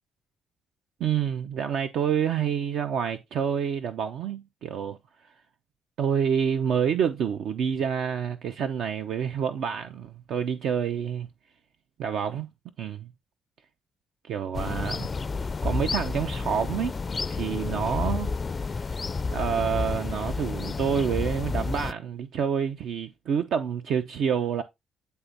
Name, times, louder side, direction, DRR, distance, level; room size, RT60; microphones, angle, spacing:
voice 1, 1.0-5.0 6.0-11.3 12.0-12.5 12.8-13.1 14.2-15.1 15.6-17.0 17.3-18.3 18.7-18.9 19.3-24.6, right 7 dB, 75° right, 0.7 m, -28 dB
sound 1, 14.5-21.9, left 4 dB, 35° left, 0.3 m, -30 dB
9.7 x 3.5 x 3.9 m
cardioid pair, 90°, 0 cm